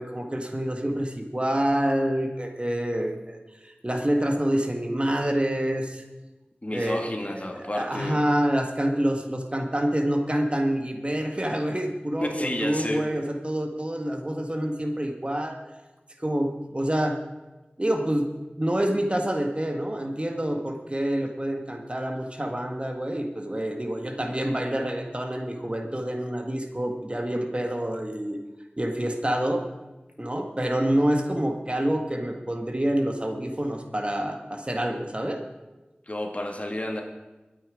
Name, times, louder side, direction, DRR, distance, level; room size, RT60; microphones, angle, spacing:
voice 1, 0.0-3.4 3.6-6.0 6.7-15.6 16.2-17.2 17.8-18.3 18.6-28.4 28.8-29.6 30.2-35.4, right 1 dB, 35° right, 4 dB, 1.7 m, -27 dB
voice 2, 6.6-8.3 12.2-13.1 36.1-37.0, left 1 dB, 40° left, 3 dB, 2.1 m, -31 dB
21.5 x 8.9 x 5.0 m, 1.1 s
wide cardioid pair, 40°, 3 cm